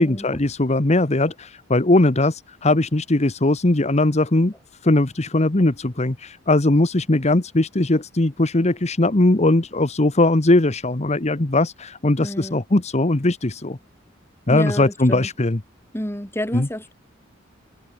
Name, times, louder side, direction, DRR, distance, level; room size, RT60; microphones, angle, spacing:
voice 1, 0.0-4.5 4.8-13.8 14.5-15.6 16.5-16.7, left 2 dB, 35° left, 1.1 m, -19 dB
voice 2, 12.2-12.6 14.5-15.3 15.9-16.9, equal, 10° left, 4.7 m, -29 dB
head